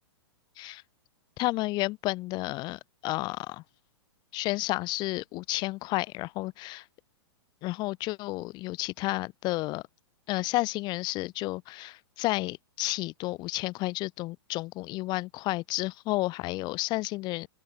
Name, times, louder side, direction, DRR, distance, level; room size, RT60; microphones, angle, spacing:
voice 1, 1.4-3.6 4.3-6.8 7.6-9.8 10.3-17.5, left 20 dB, 30° left, 0.6 m, -31 dB
open air
hypercardioid pair, 130°, 15 cm